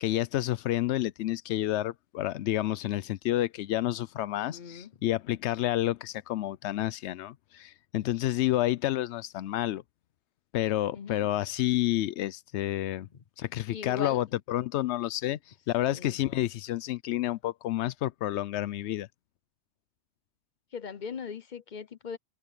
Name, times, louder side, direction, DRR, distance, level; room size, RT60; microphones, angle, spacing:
voice 1, 0.0-9.8 10.5-13.1 13.4-15.4 15.7-19.1, left 14 dB, 85° left, 0.9 m, -29 dB
voice 2, 4.4-4.9 10.9-11.3 13.1-13.2 13.7-14.2 15.9-16.2 20.7-22.2, left 6 dB, 50° left, 0.9 m, -39 dB
omnidirectional pair, 1.1 m